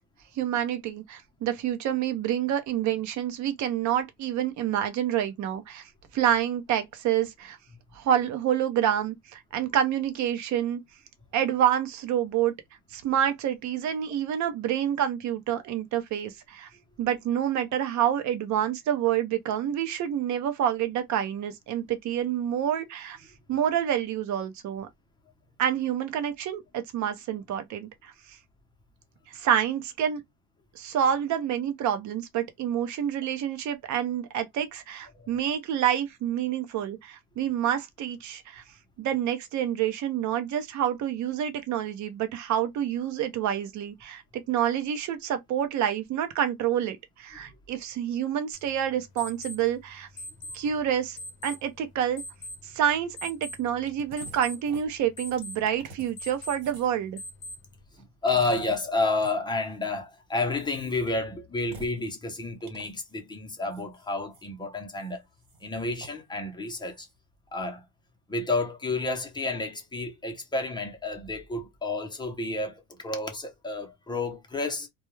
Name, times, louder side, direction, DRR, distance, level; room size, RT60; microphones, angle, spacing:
voice 1, 0.4-7.6 7.9-10.8 11.3-12.5 12.9-16.7 17.0-23.2 23.5-24.9 25.6-28.4 29.3-30.2 30.7-38.6 39.0-50.1 50.5-51.2 51.4-52.2 52.6-57.2, right 10 dB, 60° right, 0.7 m, -28 dB
sound 1, 48.5-57.8, left 1 dB, 45° left, 0.9 m, -44 dB
sound 2, 53.9-54.4 54.7-57.0 58.3-58.8 59.1-59.3 60.7-61.1 61.6-62.0 62.6-63.1 63.7-64.4 64.9-65.1 65.4-66.2 66.7-67.1, right 4 dB, 85° right, 1.4 m, -47 dB
voice 2, 57.9-65.2 65.6-67.1 67.5-67.8 68.3-74.9, left 3 dB, 15° left, 0.7 m, -30 dB
2.3 x 2.2 x 3.0 m
cardioid pair, 125°, 32 cm